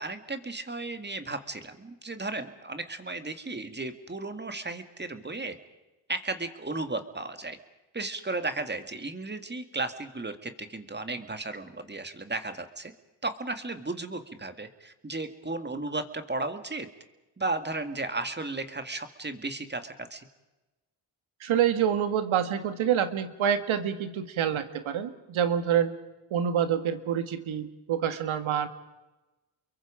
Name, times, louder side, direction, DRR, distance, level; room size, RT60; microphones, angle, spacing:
voice 1, 0.0-5.6 6.1-7.6 7.9-12.9 13.2-16.9 17.4-20.3, right 2 dB, 20° right, 9 dB, 2.0 m, -34 dB
voice 2, 21.4-25.9 26.3-28.7, right 9 dB, 75° right, 10 dB, 2.0 m, -27 dB
29.5 x 23.0 x 5.1 m, 1.1 s
cardioid pair, 80°, 48 cm